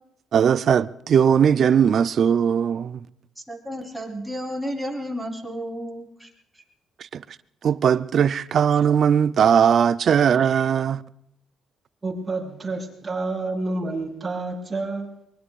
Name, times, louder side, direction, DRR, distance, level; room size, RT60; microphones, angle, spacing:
voice 1, 0.3-3.0 7.1-7.2 7.6-11.0, right 8 dB, 60° right, 0.5 m, -19 dB
voice 2, 3.4-6.3 6.5-6.6, equal, 5° right, 3.8 m, -32 dB
voice 3, 12.0-15.1, right 2 dB, 20° right, 6.3 m, -29 dB
24.0 x 22.0 x 2.5 m
cardioid pair, 85°, 0 cm